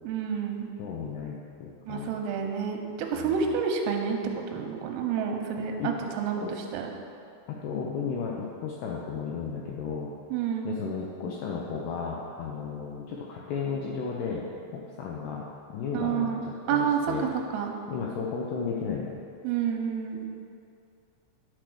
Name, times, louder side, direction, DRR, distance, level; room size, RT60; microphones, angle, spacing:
voice 1, 0.0-0.7 1.9-4.2 4.5-6.9 10.3-10.7 15.9-16.4 16.7-17.0 17.5-17.7 19.4-20.3, right 7 dB, 90° right, 3 dB, 3.6 m, -29 dB
voice 2, 0.8-2.1 3.1-3.4 5.8-5.9 6.4-6.6 7.5-10.1 10.6-15.5 15.7-16.3 16.7-17.3 17.9-19.2, left 5 dB, 80° left, -2 dB, 2.4 m, -34 dB
10.5 x 6.6 x 6.2 m, 2.5 s
omnidirectional pair, 5.7 m